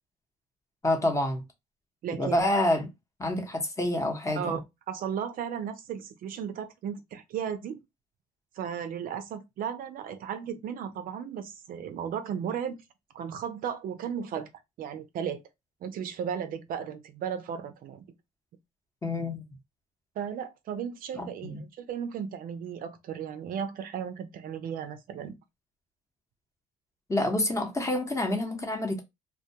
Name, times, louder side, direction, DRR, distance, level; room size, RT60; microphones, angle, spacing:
voice 1, 0.8-1.4 2.1-2.9 3.2-4.6 19.0-19.4 21.1-21.6 27.1-29.0, left 1 dB, 15° left, 0.8 m, -28 dB
voice 2, 2.0-2.4 4.4-4.6 4.9-7.8 8.6-12.8 13.1-14.5 14.8-15.4 15.8-18.1 20.2-25.3, right 8 dB, 55° right, 0.4 m, -35 dB
2.2 x 2.1 x 2.7 m
cardioid pair, 110°, 17 cm